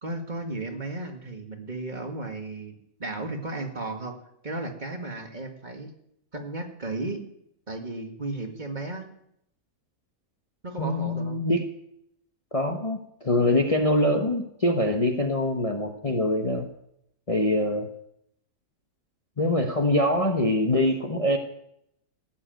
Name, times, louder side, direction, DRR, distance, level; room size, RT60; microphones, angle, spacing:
voice 1, 0.0-4.1 4.4-5.9 6.3-7.2 7.7-9.1 10.6-11.4, right 2 dB, 30° right, 4 dB, 1.9 m, -34 dB
voice 2, 10.8-11.6 12.5-16.7 17.3-17.9 19.4-21.4, left 1 dB, 25° left, 4 dB, 1.1 m, -24 dB
16.0 x 7.5 x 9.1 m, 0.75 s
omnidirectional pair, 1.6 m